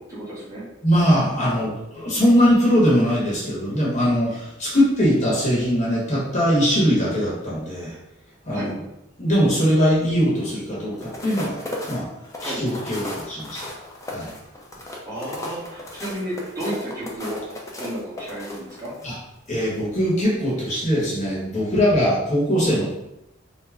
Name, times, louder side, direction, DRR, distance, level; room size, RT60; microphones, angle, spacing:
voice 1, 0.1-0.6 1.5-1.7 8.5-8.7 12.4-12.6 15.1-17.4 17.8-19.0, right 1 dB, 15° right, -9 dB, 1.2 m, -32 dB
voice 2, 0.8-7.9 8.4-8.7 9.2-11.6 11.9-12.1 12.4-13.6 14.1-14.3 19.0-19.1 19.5-22.9, equal, 40° left, -6 dB, 1.1 m, -21 dB
sound 1, 10.9-19.1 19.6-19.8, left 1 dB, 15° left, 0.5 m, -35 dB
3.5 x 2.1 x 3.3 m, 0.88 s
head